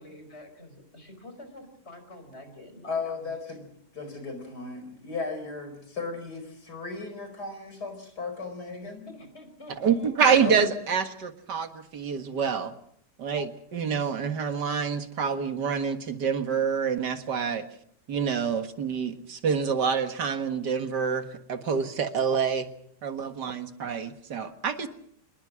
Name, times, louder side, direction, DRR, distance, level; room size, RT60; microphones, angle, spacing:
voice 1, 0.0-3.3 8.8-10.4, left 1 dB, 40° left, 8 dB, 5.3 m, -47 dB
voice 2, 2.9-9.0 10.2-10.6, left 4 dB, 70° left, 7 dB, 5.6 m, -36 dB
voice 3, 9.8-12.7 13.2-17.7 18.1-22.7 23.0-24.9, right 6 dB, 80° right, 8 dB, 2.3 m, -27 dB
26.5 x 21.0 x 6.2 m, 0.66 s
omnidirectional pair, 1.8 m